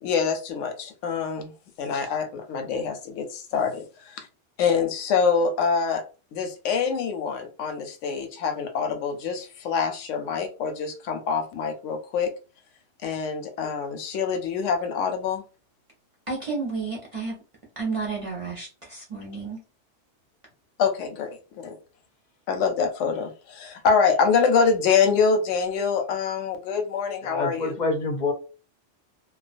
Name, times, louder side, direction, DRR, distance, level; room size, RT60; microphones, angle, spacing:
voice 1, 0.0-1.5 1.8-4.3 4.6-6.0 6.3-12.3 13.0-15.4 20.8-21.8 22.5-27.7, left 5 dB, 90° left, 0.9 m, -25 dB
voice 2, 16.3-17.4 17.8-19.6, right 4 dB, 40° right, 0.5 m, -31 dB
voice 3, 27.2-28.3, left 3 dB, 55° left, 0.5 m, -26 dB
2.3 x 2.2 x 2.4 m
omnidirectional pair, 1.2 m